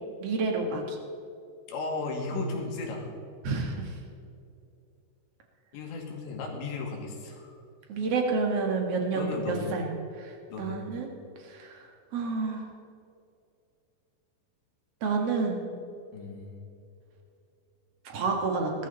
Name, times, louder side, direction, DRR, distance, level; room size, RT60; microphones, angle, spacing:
voice 1, 0.2-1.0 3.4-4.0 7.9-9.9 10.2-11.1 11.4-11.9 12.1-12.6 15.0-15.6 18.0-18.7, right 4 dB, 60° right, 2 dB, 1.7 m, -29 dB
voice 2, 1.7-3.1 5.7-7.6 9.1-9.7 10.5-10.8 16.1-16.6, left 3 dB, 70° left, 0 dB, 4.6 m, -35 dB
19.5 x 14.0 x 4.2 m, 2.6 s
omnidirectional pair, 5.5 m